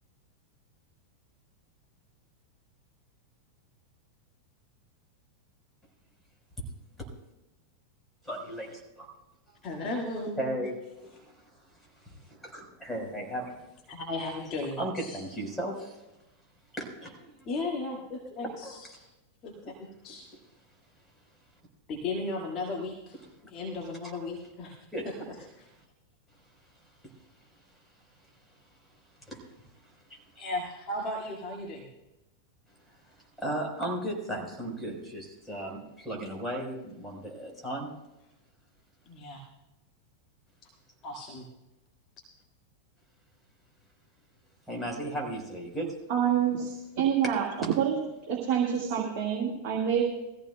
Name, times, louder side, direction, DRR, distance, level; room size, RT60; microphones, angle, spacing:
voice 1, 8.2-9.0 10.4-13.5 14.8-16.0 16.7-17.3 18.6-18.7 20.3-20.4 24.9-25.3 27.0-27.1 27.7-27.8 28.2-28.3 29.2-30.4 32.8-37.9 44.7-46.0, right 1 dB, 5° left, -1 dB, 4.2 m, -36 dB
voice 2, 9.6-10.6 13.9-15.2 17.5-19.0 19.4-20.3 21.9-23.2 23.5-24.8 25.0-25.1 30.4-31.9 39.1-39.4 41.0-41.4, left 2 dB, 35° left, -1 dB, 1.8 m, -35 dB
voice 3, 46.1-48.0 48.3-50.0, right 8 dB, 45° right, -2 dB, 1.7 m, -27 dB
20.5 x 14.5 x 2.2 m, 0.95 s
figure-of-eight pair, 90°, 0 cm